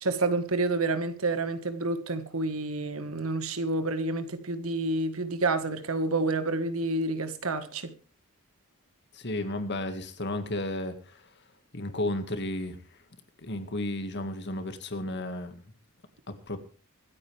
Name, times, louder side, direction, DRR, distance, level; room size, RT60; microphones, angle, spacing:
voice 1, 0.0-7.9, right 2 dB, 75° right, 1.7 m, -29 dB
voice 2, 9.1-11.2 11.7-12.8 13.4-15.6 16.3-16.6, left 1 dB, 55° left, 2.0 m, -33 dB
25.0 x 9.1 x 3.5 m
head